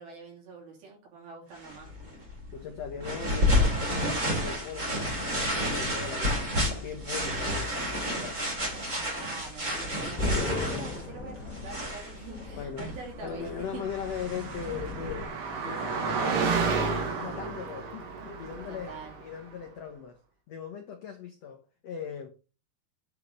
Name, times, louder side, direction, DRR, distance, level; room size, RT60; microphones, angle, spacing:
voice 1, 0.0-1.9 9.2-13.8 18.7-19.2, right 4 dB, 65° right, 4.8 m, -45 dB
sound 1, 1.6-15.3, left 1 dB, 25° right, 2.8 m, -31 dB
voice 2, 2.5-8.4 12.6-12.9 13.2-15.4 15.6-16.9 17.2-18.9 19.2-20.2 20.5-22.3, left 7 dB, 85° left, 1.4 m, -39 dB
sound 2, 9.6-16.5 16.8-16.9 17.3-17.8, left 3 dB, 5° left, 1.9 m, -40 dB
Car passing by, 13.4-19.3, right 4 dB, 80° right, 4.1 m, -32 dB
8.5 x 5.0 x 5.4 m
omnidirectional pair, 4.7 m